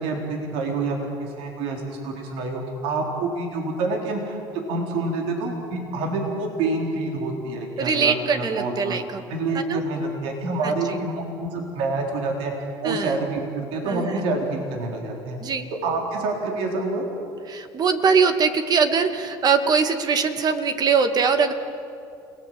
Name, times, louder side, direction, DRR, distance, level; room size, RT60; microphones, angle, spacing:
voice 1, 0.0-4.4 4.7-9.0 9.3-12.5 12.8-15.4 15.7-17.1, right 3 dB, 75° right, 1 dB, 3.9 m, -27 dB
voice 2, 7.8-9.2 9.5-9.8 10.6-10.8 12.8-13.2 13.8-14.2 15.4-15.7 17.5-21.5, right 5 dB, 45° right, 7 dB, 2.1 m, -22 dB
29.5 x 19.0 x 7.7 m, 2.5 s
supercardioid pair, 85°, 10 cm